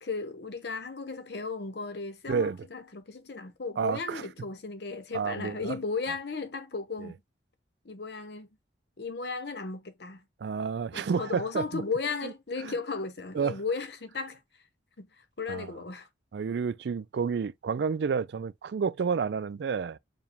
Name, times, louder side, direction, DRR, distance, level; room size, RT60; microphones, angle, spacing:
voice 1, 0.0-7.2 7.8-8.5 9.0-10.2 10.9-14.4 15.0-16.1 16.4-16.6, left 4 dB, 70° left, 0.8 m, -35 dB
voice 2, 3.8-4.2 5.1-5.8 7.0-7.1 10.4-11.8 13.3-13.6 15.5-15.7 16.3-20.0, right 6 dB, 70° right, 0.3 m, -30 dB
4.8 x 2.2 x 3.4 m
head